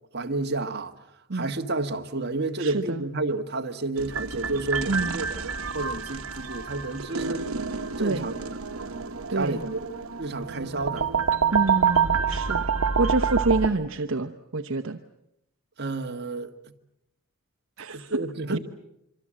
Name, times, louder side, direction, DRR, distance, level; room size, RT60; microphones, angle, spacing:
voice 1, 0.1-0.9 1.3-7.5 8.0-8.4 9.3-9.9 10.2-11.1 15.8-16.7 17.9-18.6, right 2 dB, 50° right, 1.6 m, -30 dB
voice 2, 2.6-3.0 4.9-5.2 8.0-8.3 9.3-9.6 11.5-12.6 13.0-15.0 17.8-18.2 18.5-18.6, right 3 dB, 65° right, 0.9 m, -27 dB
sound 1, 4.0-13.7, right 6 dB, 80° right, 1.3 m, -27 dB
26.0 x 24.5 x 7.6 m
head